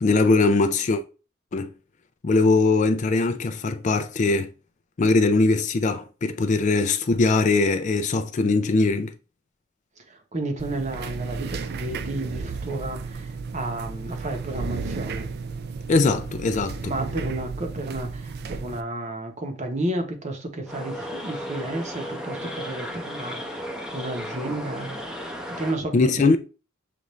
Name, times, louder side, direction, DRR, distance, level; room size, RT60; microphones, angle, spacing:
voice 1, 0.0-1.0 1.5-1.7 2.2-4.5 5.0-9.1 15.9-16.9 25.9-26.4, left 3 dB, 40° left, 0.4 m, -21 dB
voice 2, 10.0-15.3 16.8-25.0 25.5-26.4, right 1 dB, 35° right, 0.9 m, -32 dB
sound 1, 10.6-18.8, right 4 dB, 55° right, 0.4 m, -33 dB
sound 2, 20.7-25.8, equal, 5° right, 0.7 m, -34 dB
6.6 x 2.5 x 3.1 m
head